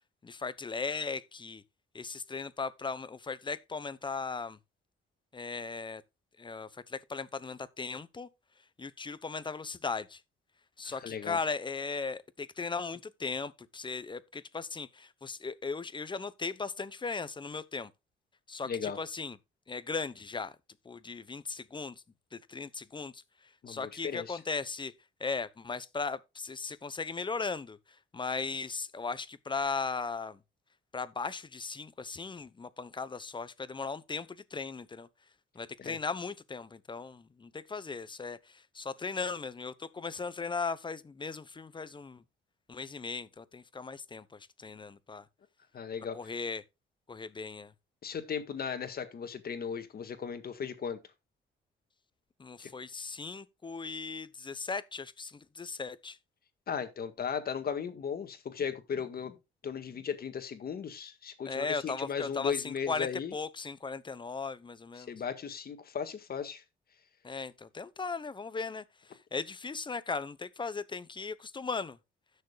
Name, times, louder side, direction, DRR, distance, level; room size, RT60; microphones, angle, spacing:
voice 1, 0.2-1.6 1.9-4.6 5.3-6.0 6.4-8.3 8.8-10.2 10.8-17.9 18.5-19.4 19.7-20.5 20.8-22.0 22.3-23.2 23.7-24.9 25.2-27.8 28.1-30.4 30.9-35.1 35.5-42.2 42.7-45.3 46.1-46.6 47.1-47.7 52.4-56.2 61.4-65.1 67.2-72.0, left 4 dB, 25° left, 0.9 m, -37 dB
voice 2, 10.9-11.4 18.6-19.0 23.6-24.4 35.8-36.0 45.7-46.2 48.0-51.0 52.6-52.7 56.7-59.4 59.6-63.3 65.0-66.6, left 7 dB, 50° left, 1.7 m, -36 dB
16.5 x 6.6 x 2.3 m
cardioid pair, 90°, 20 cm